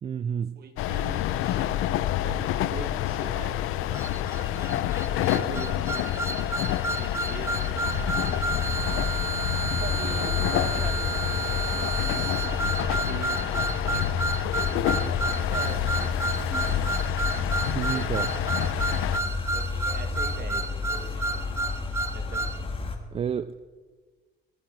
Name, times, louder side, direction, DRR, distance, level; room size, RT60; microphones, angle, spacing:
voice 1, 0.0-0.7 17.6-18.3 23.1-23.6, right 7 dB, 30° right, 0.3 m, -30 dB
voice 2, 0.6-4.5 5.3-7.9 8.4-8.9 9.5-12.3 12.9-14.2 14.7-20.6 20.9-21.6 22.1-22.7, right 5 dB, 50° right, 2.1 m, -43 dB
sound 1, 0.8-19.2, left 12 dB, 85° left, 0.7 m, -28 dB
sound 2, 3.9-22.6, right 3 dB, 15° right, 0.8 m, -32 dB
sound 3, 7.7-23.0, left 3 dB, 25° left, 1.8 m, -32 dB
22.5 x 9.2 x 4.7 m
cardioid pair, 120°, 21 cm